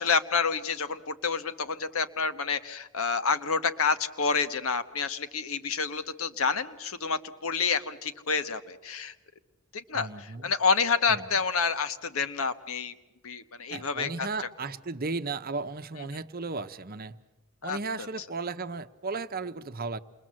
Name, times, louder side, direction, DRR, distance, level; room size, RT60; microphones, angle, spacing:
voice 1, 0.0-9.1 9.7-12.9 13.2-14.3 17.6-17.8, left 5 dB, 70° left, 1.2 m, -28 dB
voice 2, 9.9-10.5 11.1-11.3 13.7-17.2 17.6-20.0, right 3 dB, 45° right, 0.9 m, -35 dB
28.5 x 22.0 x 7.6 m
head